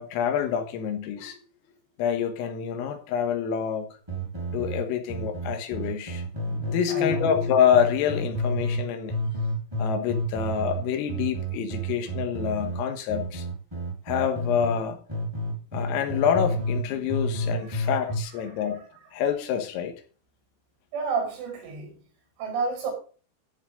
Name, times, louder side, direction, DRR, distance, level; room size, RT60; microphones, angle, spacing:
voice 1, 0.0-1.4 2.0-3.9 4.5-9.2 9.8-13.5 14.1-15.0 15.7-18.8 19.1-20.0, left 8 dB, 85° left, 4.1 m, -27 dB
sound 1, 4.1-6.8 7.1-8.8 9.1-14.8 15.1-16.8 17.1-18.2, equal, 5° right, 2.3 m, -30 dB
voice 2, 6.9-7.3 17.6-17.7 18.4-18.9 20.9-22.0 22.4-22.9, right 5 dB, 65° right, 6.8 m, -31 dB
14.0 x 5.3 x 5.2 m
omnidirectional pair, 5.9 m